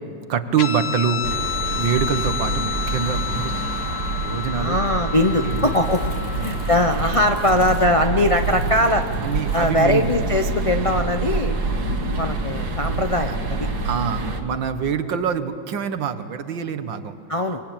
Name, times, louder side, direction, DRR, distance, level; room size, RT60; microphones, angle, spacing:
voice 1, 0.3-1.2 1.8-3.5 4.2-4.8 5.4-5.6 6.3-6.5 9.2-10.1 13.3-13.4 13.8-17.2, right 7 dB, 70° right, 10 dB, 1.9 m, -25 dB
Guitar, 0.6-7.5, left 7 dB, 75° left, 1.8 m, -30 dB
sound 1, 1.2-14.4, right 3 dB, 50° right, 2.2 m, -26 dB
voice 2, 4.6-9.1 9.5-11.6 12.2-13.7 17.3-17.6, left 1 dB, 50° left, 5 dB, 0.4 m, -21 dB
Crumpling crinkling, 5.3-11.6 11.9-12.2, left 1 dB, 25° left, 2.5 m, -47 dB
25.0 x 24.5 x 8.9 m, 2.5 s
omnidirectional pair, 2.2 m